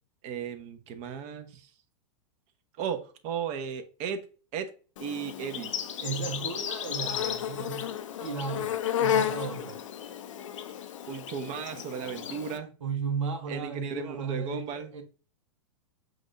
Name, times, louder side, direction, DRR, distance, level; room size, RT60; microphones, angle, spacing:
voice 1, 0.2-1.7 2.8-4.2 4.5-4.7 5.0-5.7 11.1-12.7 13.5-14.9, right 7 dB, 45° right, 1.0 m, -35 dB
Insect, 5.0-12.6, left 9 dB, 75° left, 0.6 m, -33 dB
voice 2, 6.0-7.8 8.2-8.7 9.0-9.8 12.8-15.0, right 6 dB, 80° right, 1.2 m, -34 dB
7.7 x 2.6 x 2.5 m
hypercardioid pair, 115°, 16 cm